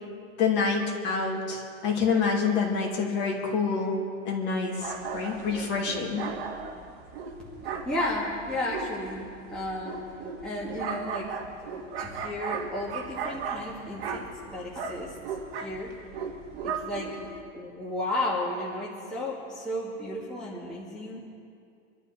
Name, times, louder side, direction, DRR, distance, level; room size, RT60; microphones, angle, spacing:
voice 1, 0.4-6.2, left 5 dB, 25° left, 0 dB, 2.3 m, -27 dB
sound 1, 4.8-17.4, right 5 dB, 50° right, 1.9 m, -36 dB
voice 2, 7.6-10.0 10.4-11.3 12.0-15.1 15.6-15.9 16.6-17.1 17.5-21.2, left 1 dB, ahead, -8 dB, 1.9 m, -33 dB
26.5 x 12.5 x 4.2 m, 2.4 s
supercardioid pair, 170°, 40 cm